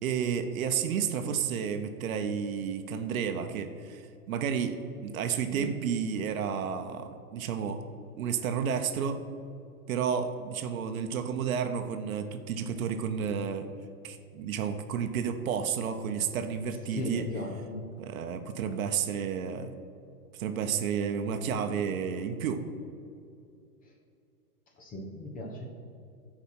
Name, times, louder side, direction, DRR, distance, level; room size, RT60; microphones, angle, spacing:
voice 1, 0.0-4.8 5.0-7.8 8.2-9.2 9.9-13.7 14.0-17.3 18.0-19.7 20.3-22.6, right 7 dB, 60° right, 8 dB, 0.9 m, -31 dB
voice 2, 16.9-17.9 24.8-25.7, left 1 dB, 20° left, 2 dB, 1.0 m, -37 dB
11.5 x 5.0 x 5.6 m, 2.6 s
hypercardioid pair, 140°, 48 cm